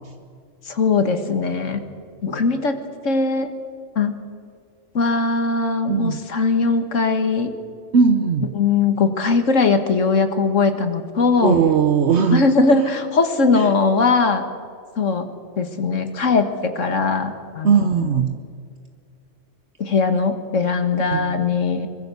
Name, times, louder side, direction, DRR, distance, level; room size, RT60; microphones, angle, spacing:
voice 1, 0.7-1.8 2.2-2.8 3.0-3.5 4.0-4.2 4.9-7.5 8.5-11.6 12.3-14.4 15.0-15.3 15.6-18.2 19.8-21.9, left 4 dB, 75° left, 8 dB, 2.0 m, -20 dB
voice 2, 5.9-6.2 7.9-8.5 11.4-12.4 13.5-13.6 17.6-18.3 21.1-21.4, right 6 dB, 60° right, 7 dB, 1.2 m, -18 dB
23.5 x 22.0 x 7.0 m, 2.2 s
omnidirectional pair, 1.3 m